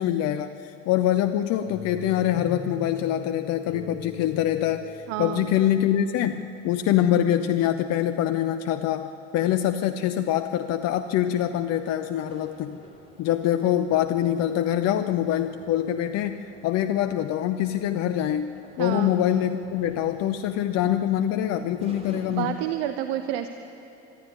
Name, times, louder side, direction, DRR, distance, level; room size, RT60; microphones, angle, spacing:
voice 1, 0.0-12.8 13.2-18.5 18.8-22.6, left 11 dB, 45° left, 8 dB, 0.8 m, -24 dB
sound 1, 1.7-6.6, left 4 dB, 25° left, 5.6 m, -42 dB
voice 2, 5.1-5.5 18.8-19.1 22.3-23.5, right 12 dB, 55° right, 9 dB, 1.0 m, -29 dB
sound 2, 10.9-22.8, right 1 dB, 15° right, 3.7 m, -51 dB
25.5 x 12.5 x 10.0 m, 2.9 s
figure-of-eight pair, 65°, 37 cm